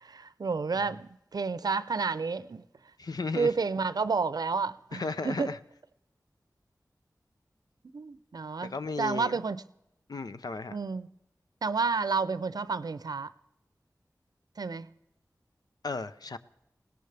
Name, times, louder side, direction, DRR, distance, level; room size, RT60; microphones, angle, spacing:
voice 1, 0.0-2.6 3.4-5.5 7.9-9.6 10.7-11.1 11.6-13.3 14.6-14.9, right 4 dB, 70° right, 0.6 m, -30 dB
voice 2, 3.0-3.5 4.9-5.6 8.6-9.4 10.1-10.8 15.8-16.4, left 4 dB, 75° left, 0.7 m, -35 dB
21.5 x 17.5 x 3.4 m
cardioid pair, 45°, 7 cm